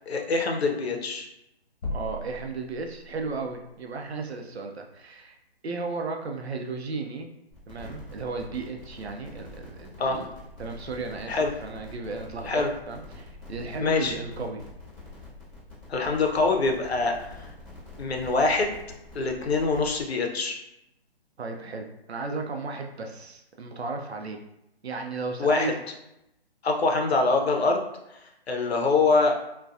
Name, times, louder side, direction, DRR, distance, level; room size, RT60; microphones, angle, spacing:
voice 1, 0.1-1.3 10.0-10.2 11.3-11.5 12.4-12.7 13.8-14.2 15.9-17.5 18.0-18.8 19.1-20.6 25.4-25.7 26.6-27.9 28.5-29.3, left 3 dB, 80° left, 2 dB, 0.6 m, -24 dB
sound 1, 1.8-3.4, left 1 dB, 35° left, 1.0 m, -36 dB
voice 2, 1.9-5.4 5.6-7.3 7.7-10.3 10.6-14.6 21.4-24.4 24.8-25.7, right 3 dB, 85° right, 3 dB, 0.5 m, -35 dB
sound 2, 7.5-20.0, left 2 dB, ahead, 0.5 m, -46 dB
2.3 x 2.2 x 2.5 m, 0.84 s
figure-of-eight pair, 145°, 31 cm